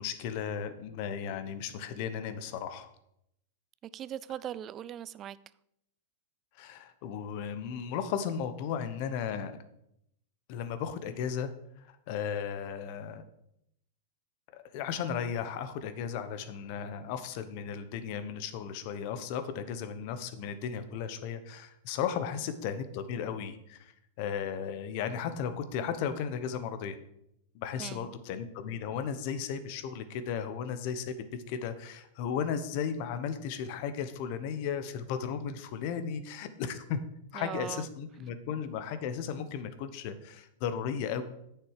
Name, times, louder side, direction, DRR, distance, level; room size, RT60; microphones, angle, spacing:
voice 1, 0.0-2.9 6.6-9.5 10.5-11.5 11.8-13.2 14.5-23.9 24.2-27.0 27.5-37.0 37.3-41.2, left 7 dB, 50° left, 1.0 m, -35 dB
voice 2, 3.9-5.4 27.8-28.2 37.3-37.9, right 10 dB, 30° right, 0.4 m, -39 dB
9.1 x 6.8 x 4.9 m
hypercardioid pair, 130°, 0 cm